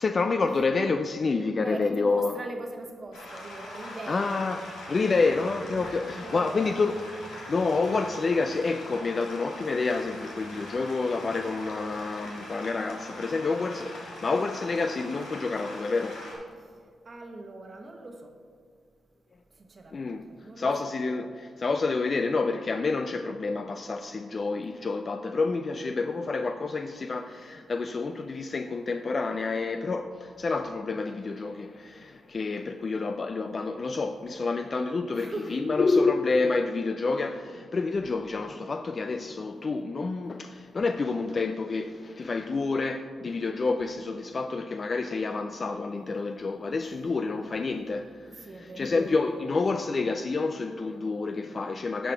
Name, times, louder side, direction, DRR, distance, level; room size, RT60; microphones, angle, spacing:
voice 1, 0.0-2.3 4.1-4.6 4.9-6.9 7.2-16.3 19.9-20.2 20.6-52.1, left 3 dB, 50° left, 0.3 m, -28 dB
voice 2, 1.6-4.4 5.7-6.8 17.0-18.3 19.6-21.0 35.1-36.0 48.3-48.9, right 2 dB, 45° right, 1.0 m, -41 dB
sound 1, 3.1-16.4, left 1 dB, 85° left, 1.7 m, -42 dB
9.7 x 4.9 x 4.5 m
supercardioid pair, 50°, 0 cm